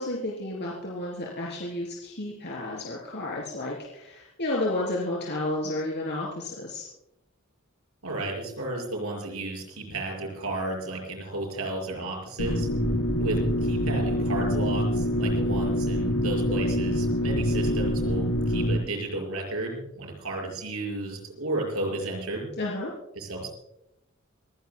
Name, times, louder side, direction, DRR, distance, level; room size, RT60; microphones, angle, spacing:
voice 1, 0.0-6.8 22.6-22.9, left 2 dB, 55° left, -3 dB, 3.5 m, -31 dB
voice 2, 8.0-12.7 13.2-22.5 23.2-23.5, right 2 dB, 85° right, 1 dB, 5.8 m, -33 dB
sound 1, 12.4-18.8, equal, 85° left, 4.3 m, -25 dB
26.0 x 17.5 x 2.3 m, 0.90 s
head